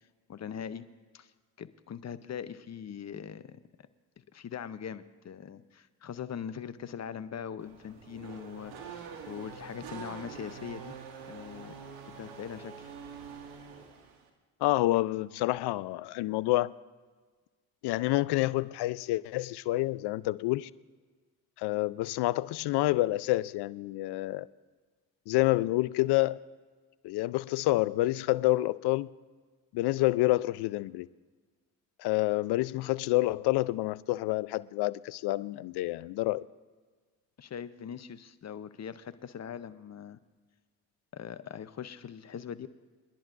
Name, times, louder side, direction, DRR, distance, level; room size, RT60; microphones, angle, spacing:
voice 1, 0.3-0.9 1.1-1.3 1.6-3.9 4.3-10.9 11.3-11.8 12.1-12.9 37.4-40.2 41.1-42.7, left 8 dB, 40° left, 0.8 m, -41 dB
Race car auto racing / Accelerating revving vroom, 7.6-14.3, right 6 dB, 85° right, 1.2 m, -45 dB
voice 2, 14.6-16.7 17.8-20.7 21.6-24.5 25.3-26.4 27.0-29.1 29.7-31.1 32.0-36.4, left 18 dB, 65° left, 0.5 m, -28 dB
28.5 x 11.0 x 2.6 m
hypercardioid pair, 50°, 43 cm